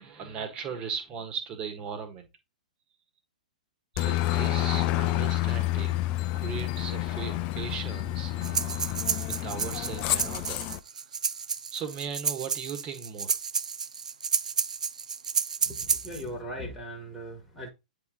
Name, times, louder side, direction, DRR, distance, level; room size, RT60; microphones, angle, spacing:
voice 1, 0.0-2.3 3.9-6.1 6.3-8.9 9.2-10.7 11.7-13.3, right 6 dB, 25° right, 1.6 m, -38 dB
Aircraft, 4.0-10.8, left 16 dB, 30° left, 0.5 m, -29 dB
Breathing, 8.4-16.2, right 6 dB, 65° right, 0.5 m, -31 dB
voice 2, 15.7-17.7, equal, ahead, 1.5 m, -39 dB
9.2 x 3.3 x 3.8 m
figure-of-eight pair, 110°, 4 cm